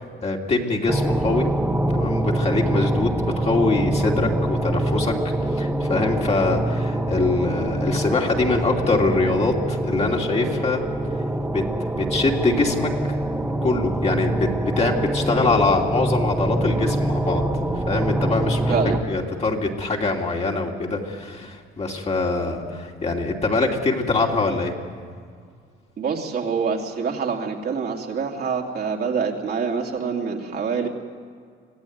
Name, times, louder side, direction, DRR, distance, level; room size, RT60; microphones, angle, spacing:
voice 1, 0.2-1.5 1.9-5.1 5.6-10.8 11.5-12.9 13.6-17.4 17.7-18.7 19.1-24.7, left 3 dB, 30° left, 0 dB, 2.9 m, -23 dB
sound 1, 0.9-19.0, right 1 dB, 10° right, 1.8 m, -24 dB
voice 2, 18.7-19.0 26.0-30.9, right 5 dB, 50° right, 1 dB, 2.9 m, -26 dB
25.5 x 16.0 x 9.4 m, 2.1 s
cardioid pair, 115°, 20 cm